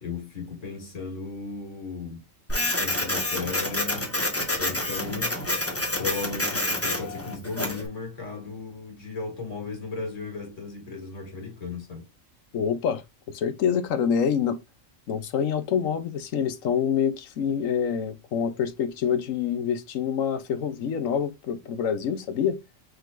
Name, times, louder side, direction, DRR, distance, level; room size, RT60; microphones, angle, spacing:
voice 1, 0.0-2.2 2.7-4.2 4.6-5.4 6.0-12.1, left 4 dB, 70° left, 2.2 m, -35 dB
Printer, 2.5-7.9, left 1 dB, 10° left, 1.0 m, -28 dB
voice 2, 12.5-13.0 13.3-14.6 15.1-22.6, left 7 dB, 85° left, 1.2 m, -26 dB
5.3 x 3.8 x 2.5 m
omnidirectional pair, 1.3 m